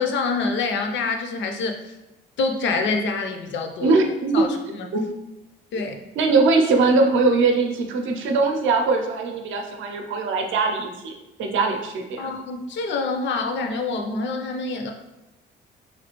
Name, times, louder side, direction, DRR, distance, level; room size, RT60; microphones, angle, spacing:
voice 1, 0.0-1.9 2.4-3.9 4.3-4.5 4.8-5.1 5.7-5.9 12.2-14.9, left 4 dB, 70° left, 4 dB, 0.5 m, -26 dB
voice 2, 3.8-4.5 4.9-5.0 6.2-12.3, right 3 dB, 75° right, 3 dB, 0.5 m, -21 dB
3.1 x 2.4 x 2.9 m, 0.97 s
cardioid pair, 90°, 20 cm